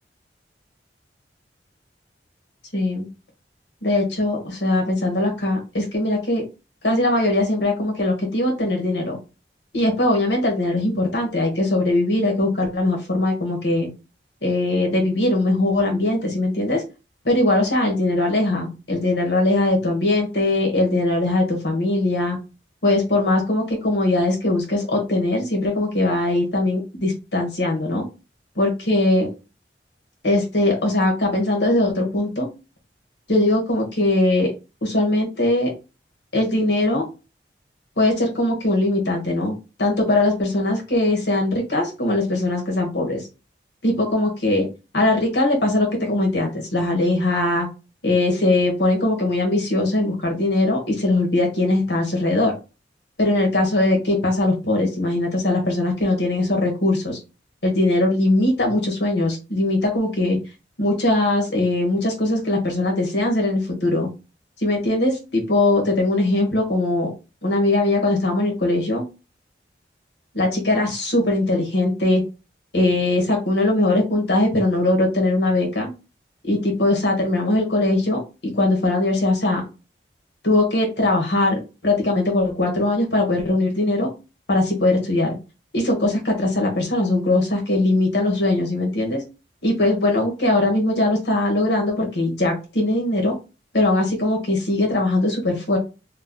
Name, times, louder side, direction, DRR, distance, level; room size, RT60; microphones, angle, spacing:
voice 1, 2.7-3.1 3.8-6.4 6.8-9.2 9.7-13.9 14.4-16.8 17.2-22.4 22.8-28.0 28.6-29.3 30.2-32.5 33.3-34.5 34.8-35.7 36.3-37.1 38.0-43.2 43.8-44.7 44.9-47.7 48.0-52.5 53.2-57.2 57.6-60.4 60.8-64.1 64.6-67.1 67.4-69.0 70.3-72.2 72.7-75.9 76.4-79.7 80.4-84.1 84.5-85.3 85.7-89.2 89.6-93.3 93.7-95.8, left 2 dB, 80° left, 1 dB, 1.3 m, -20 dB
3.1 x 2.0 x 3.8 m, 0.29 s
head